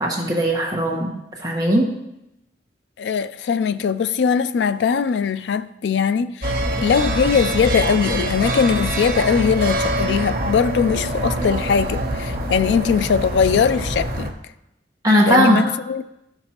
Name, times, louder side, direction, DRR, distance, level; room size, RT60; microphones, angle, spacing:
voice 1, 0.0-1.9 15.0-15.6, equal, 20° right, 1.2 m, -18 dB
voice 2, 3.0-14.3 15.2-16.0, left 6 dB, 80° left, 0.3 m, -20 dB
sound 1, 6.4-14.3, right 1 dB, 55° right, 1.1 m, -24 dB
13.0 x 5.9 x 2.9 m
head